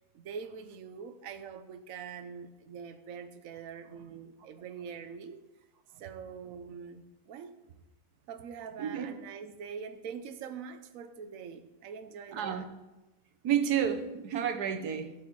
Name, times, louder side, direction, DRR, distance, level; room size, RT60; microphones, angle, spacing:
voice 1, 0.1-5.4 6.0-7.6 8.3-12.7, right 6 dB, 65° right, 1.2 m, -44 dB
voice 2, 8.8-9.1 12.3-12.7 13.4-15.1, right 9 dB, 90° right, 1.5 m, -30 dB
16.0 x 7.8 x 4.8 m
omnidirectional pair, 1.6 m